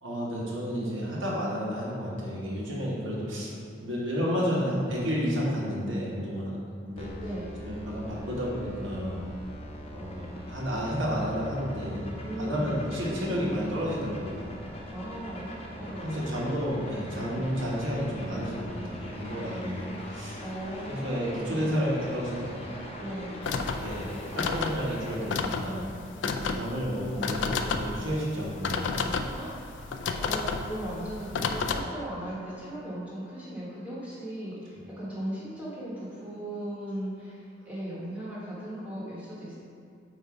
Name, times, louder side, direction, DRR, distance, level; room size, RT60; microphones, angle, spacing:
voice 1, 0.0-3.5 3.8-6.6 6.9-7.1 7.6-9.2 9.9-12.0 12.4-14.4 15.8-20.4 20.9-22.6 23.7-25.8 26.5-28.9, equal, 80° right, -5 dB, 1.4 m, -31 dB
sound 1, 7.0-25.1, equal, 30° left, 0.7 m, -42 dB
voice 2, 7.2-7.5 12.2-12.9 14.9-16.3 17.3-17.6 20.4-21.8 23.0-23.4 26.2-26.7 29.3-29.6 30.2-39.5, right 1 dB, 10° right, -9 dB, 1.2 m, -37 dB
sound 2, 23.4-31.8, left 4 dB, 70° left, 0.4 m, -32 dB
8.0 x 2.7 x 4.8 m, 2.3 s
head